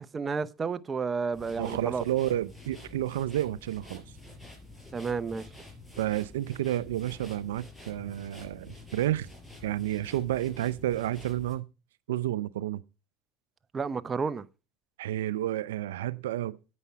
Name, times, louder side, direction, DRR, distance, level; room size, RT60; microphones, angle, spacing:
voice 1, 0.0-2.0 4.9-5.5 13.7-14.5, right 5 dB, 25° right, 0.7 m, -31 dB
sound 1, 1.3-11.6, left 2 dB, 5° left, 4.6 m, -48 dB
voice 2, 1.6-4.0 6.0-9.3 9.6-11.7 12.1-12.8 15.0-16.6, right 13 dB, 90° right, 0.5 m, -30 dB
9.8 x 8.4 x 4.6 m
supercardioid pair, 95°, 0 cm